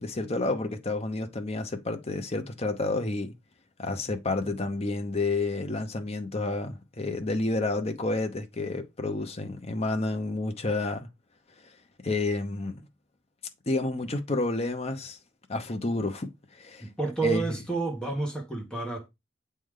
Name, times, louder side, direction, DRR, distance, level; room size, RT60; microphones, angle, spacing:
voice 1, 0.0-3.3 3.8-11.1 12.0-12.8 13.7-15.2 15.5-16.9 17.2-17.4, left 2 dB, 30° left, 0.8 m, -30 dB
voice 2, 16.8-19.1, right 3 dB, 5° left, 1.5 m, -30 dB
7.6 x 3.3 x 3.7 m
head